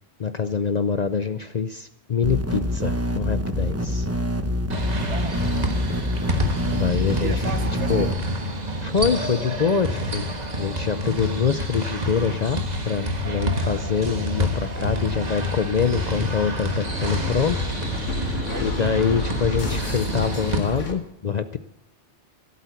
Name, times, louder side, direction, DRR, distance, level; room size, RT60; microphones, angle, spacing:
voice 1, 0.2-4.1 6.7-7.3 7.9-8.1 8.8-10.3 10.6-17.6 17.8-21.6, left 6 dB, 50° left, 11 dB, 0.6 m, -25 dB
sound 1, 2.2-8.1, left 1 dB, 15° right, 0.9 m, -26 dB
sound 2, 4.7-20.6, equal, 35° right, 1.6 m, -28 dB
voice 2, 5.1-5.7 7.2-8.1 16.9-17.7 18.3-19.0, right 5 dB, 75° right, 9 dB, 1.5 m, -35 dB
sound 3, 12.6-20.9, equal, 85° left, 2.1 m, -32 dB
16.0 x 8.4 x 8.3 m, 0.81 s
omnidirectional pair, 1.2 m